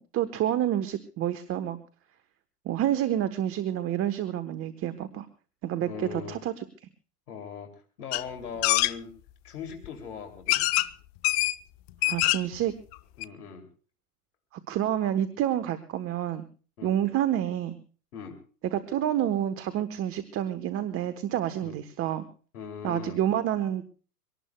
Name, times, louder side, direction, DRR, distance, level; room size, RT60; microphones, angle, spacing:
voice 1, 0.0-1.8 2.6-5.3 5.6-6.6 12.0-12.7 14.7-16.5 16.8-17.8 18.7-22.2 22.8-24.0, right 11 dB, 30° right, 11 dB, 1.2 m, -28 dB
voice 2, 5.8-6.4 7.3-9.1 9.4-10.6 13.2-13.7 16.8-17.0 18.1-18.4 21.6-21.7 22.5-23.2, left 6 dB, 75° left, 5 dB, 3.0 m, -40 dB
sound 1, 8.1-8.2 8.6-8.9 9.8-9.9 10.5-10.9 11.2-11.5 11.9-12.5 12.9-13.0 13.2-13.3, left 19 dB, 45° left, 0.8 m, -24 dB
24.5 x 18.5 x 2.3 m, 0.39 s
hypercardioid pair, 105°, 46 cm